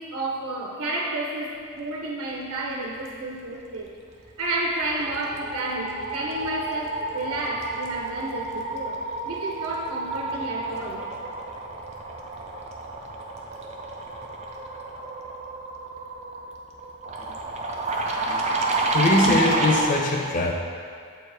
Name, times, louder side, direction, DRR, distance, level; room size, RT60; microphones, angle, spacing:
voice 1, 0.0-3.9 4.4-9.0 9.2-11.1, right 2 dB, 90° right, -2 dB, 0.7 m, -31 dB
sound 1, 4.1-4.4 4.7-20.0, right 2 dB, 30° right, 0.5 m, -30 dB
voice 2, 18.9-20.5, left 2 dB, 35° left, 1 dB, 0.4 m, -22 dB
7.5 x 4.5 x 3.3 m, 2.2 s
head